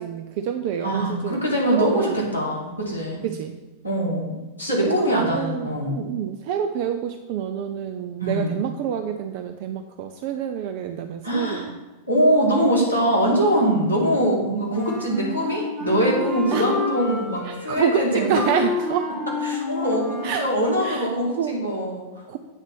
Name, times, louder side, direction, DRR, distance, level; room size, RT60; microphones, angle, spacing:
voice 1, 0.0-1.4 1.7-2.2 3.2-3.5 4.8-11.8 16.5-16.6 17.4-19.1 20.2-20.5 20.8-21.1 21.4-21.6 22.3-22.4, right 8 dB, 50° right, 6 dB, 0.5 m, -27 dB
voice 2, 0.8-3.3 3.8-6.0 8.2-8.6 11.2-11.7 12.1-18.4 19.4-22.4, equal, 90° right, -5 dB, 2.5 m, -23 dB
Wind instrument woodwind instrument, 14.7-20.6, left 4 dB, 5° left, 2.4 m, -30 dB
8.2 x 4.0 x 6.2 m, 1.2 s
figure-of-eight pair, 90°, 0 cm